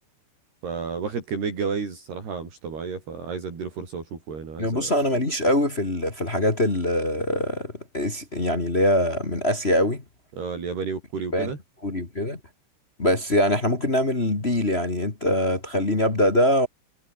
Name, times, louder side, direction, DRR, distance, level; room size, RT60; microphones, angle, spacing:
voice 1, 0.6-4.9 10.4-11.6, right 5 dB, 60° right, 7.4 m, -31 dB
voice 2, 4.6-10.0 11.3-11.5 11.8-12.4 13.0-16.7, left 1 dB, 25° left, 1.4 m, -23 dB
omnidirectional pair, 5.2 m